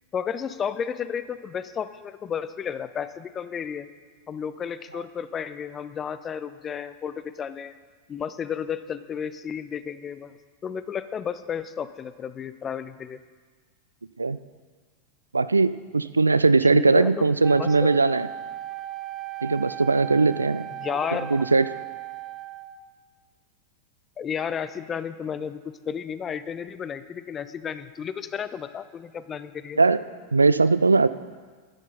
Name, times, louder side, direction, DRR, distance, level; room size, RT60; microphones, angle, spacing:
voice 1, 0.1-3.9 4.3-7.7 8.1-10.3 10.6-13.2 16.7-17.3 17.6-18.0 20.8-21.4 24.2-29.8, left 7 dB, 25° left, 13 dB, 0.5 m, -32 dB
voice 2, 15.3-18.3 19.4-20.6 21.3-21.7 29.8-30.0 30.3-31.1, right 3 dB, 80° right, 15 dB, 0.3 m, -20 dB
Wind instrument woodwind instrument, 17.4-22.9, right 12 dB, 25° right, 0.5 m, -37 dB
11.5 x 9.9 x 4.0 m, 1.5 s
figure-of-eight pair, 90°, 0 cm